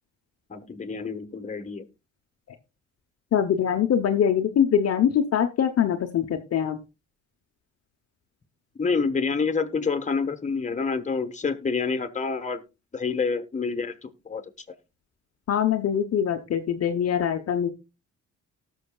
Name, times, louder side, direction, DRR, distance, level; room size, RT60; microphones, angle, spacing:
voice 1, 0.5-1.9 8.8-12.6 12.9-14.4, left 5 dB, 25° left, 9 dB, 1.4 m, -27 dB
voice 2, 3.3-6.8 15.5-17.7, left 8 dB, 55° left, 5 dB, 0.9 m, -23 dB
18.5 x 6.4 x 2.3 m, 0.27 s
cardioid pair, 90°, 30 cm